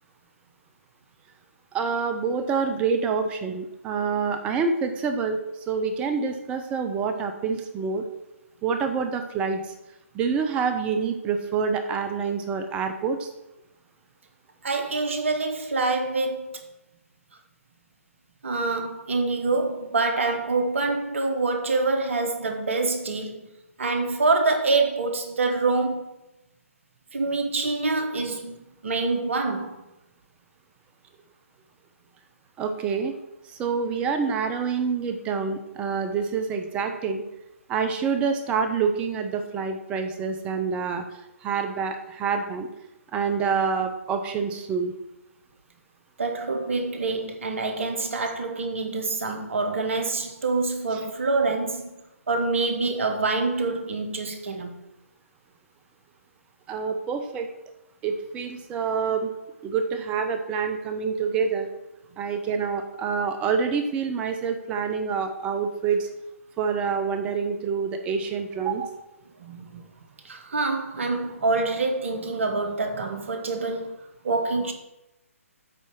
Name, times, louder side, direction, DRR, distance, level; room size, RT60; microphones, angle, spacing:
voice 1, 1.7-5.4 5.7-8.1 8.6-9.7 10.1-13.3 32.6-33.2 33.4-37.2 37.7-41.0 41.4-42.7 43.1-44.9 50.9-51.0 56.7-57.5 58.0-59.3 59.6-61.7 62.2-66.1 66.6-68.9, right 5 dB, 15° right, 0.5 m, -27 dB
voice 2, 14.6-16.6 18.4-23.5 23.8-26.1 27.1-29.8 46.2-52.0 52.3-54.7 69.4-69.8 70.2-73.9 74.2-74.7, right 3 dB, 55° right, 1.2 m, -26 dB
8.3 x 4.2 x 6.2 m
figure-of-eight pair, 135°, 8 cm